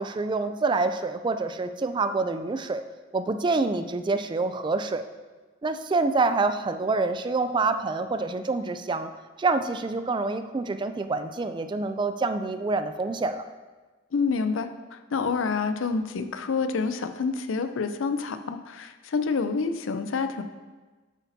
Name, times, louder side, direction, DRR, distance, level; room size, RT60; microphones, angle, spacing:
voice 1, 0.0-2.8 3.1-5.0 5.6-9.1 9.4-13.4, right 3 dB, 25° right, 10 dB, 0.3 m, -27 dB
voice 2, 14.1-20.4, left 4 dB, 85° left, 9 dB, 0.5 m, -28 dB
8.3 x 8.1 x 2.7 m, 1.3 s
head